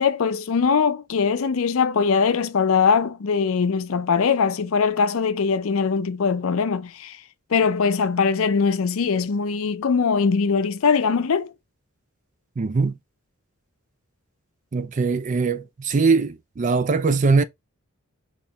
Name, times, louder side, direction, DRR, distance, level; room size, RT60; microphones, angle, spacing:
voice 1, 0.0-7.2 7.5-11.5, left 5 dB, 70° left, 0.5 m, -21 dB
voice 2, 12.6-13.0 14.7-17.4, right 4 dB, 35° right, 0.3 m, -21 dB
4.2 x 3.0 x 3.3 m
head